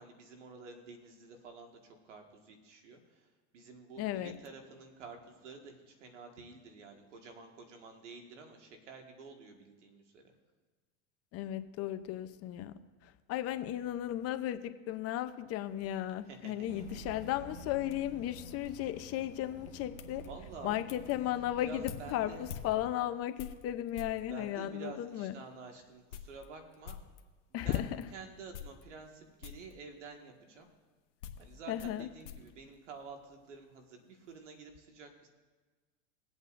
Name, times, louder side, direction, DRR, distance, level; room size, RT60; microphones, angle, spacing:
voice 1, 0.0-10.2 16.3-17.0 20.2-20.8 21.6-22.5 24.3-27.0 27.5-30.7 31.4-35.3, right 4 dB, 90° right, 4 dB, 1.8 m, -50 dB
voice 2, 4.0-4.3 11.3-12.7 13.0-14.6 14.9-20.2 20.6-25.3 27.5-28.0 31.7-32.1, left 12 dB, 45° left, 10 dB, 0.7 m, -35 dB
sound 1, 15.6-24.3 25.0-25.1 25.5-25.6 25.9-28.1 28.5-29.2 29.4-29.8 30.6-33.5 33.8-34.4, left 9 dB, 85° left, 1.0 m, -50 dB
sound 2, 16.7-22.9, equal, 20° right, 1.8 m, -50 dB
22.5 x 8.1 x 2.6 m, 1.3 s
hypercardioid pair, 105°, 35 cm